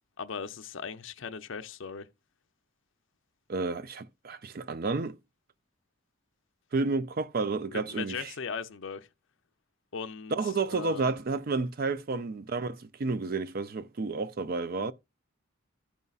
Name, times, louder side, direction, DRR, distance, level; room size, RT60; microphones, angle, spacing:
voice 1, 0.2-2.1 7.7-9.1 9.9-11.1 12.1-12.2 14.7-14.9, left 6 dB, 65° left, 0.6 m, -38 dB
voice 2, 3.5-5.2 6.7-8.3 10.3-14.9, right 3 dB, 45° right, 0.4 m, -31 dB
14.5 x 5.4 x 2.3 m
head